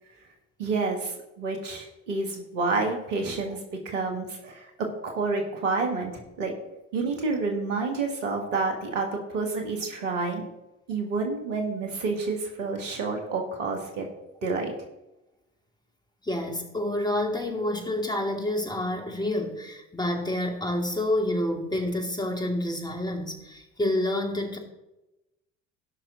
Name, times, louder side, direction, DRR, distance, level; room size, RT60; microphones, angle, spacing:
voice 1, 0.6-3.6 3.9-6.1 6.4-6.5 6.9-10.4 10.9-14.1 14.4-14.7, right 3 dB, 75° right, 2 dB, 1.9 m, -29 dB
voice 2, 16.2-24.6, left 1 dB, 10° left, 2 dB, 2.3 m, -28 dB
16.5 x 6.1 x 4.0 m, 0.95 s
figure-of-eight pair, 60°, 38 cm